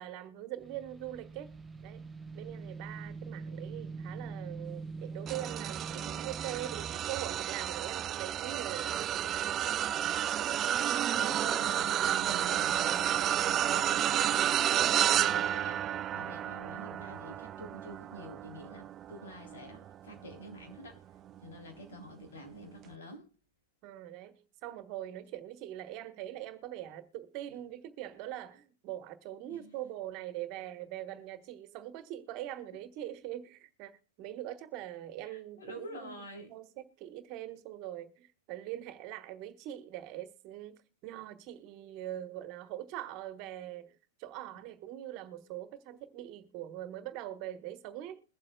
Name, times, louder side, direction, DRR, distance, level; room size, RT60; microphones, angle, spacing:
voice 1, 0.0-1.5 1.8-2.0 2.3-9.4 11.1-11.4 23.8-36.7 37.0-48.2, right 13 dB, 45° right, 1.3 m, -42 dB
sound 1, 0.6-7.0, right 4 dB, 15° right, 0.8 m, -43 dB
sound 2, 5.3-20.8 21.3-21.5 22.8-22.9, right 11 dB, 30° right, 0.4 m, -31 dB
voice 2, 5.7-6.2 11.2-15.9 16.1-21.0 21.4-23.3 29.5-29.7 35.3-36.5, equal, 80° left, 3.5 m, -48 dB
22.0 x 7.6 x 2.3 m
hypercardioid pair, 110°, 0 cm